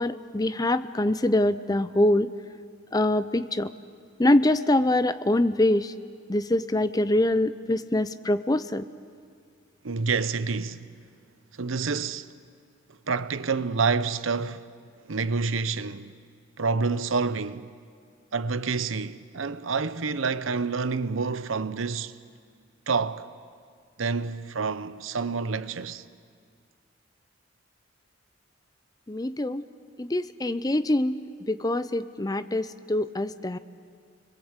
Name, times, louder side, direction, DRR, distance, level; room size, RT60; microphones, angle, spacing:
voice 1, 0.0-2.3 2.9-3.7 4.2-5.9 6.3-8.9 29.1-29.7 30.0-33.6, left 1 dB, 20° left, 0.6 m, -24 dB
voice 2, 9.8-10.9 11.6-12.3 13.1-14.6 15.1-16.2 16.6-17.7 18.3-22.2 22.9-23.3 24.0-26.0, right 4 dB, 85° right, 0.8 m, -28 dB
29.0 x 22.0 x 8.1 m
head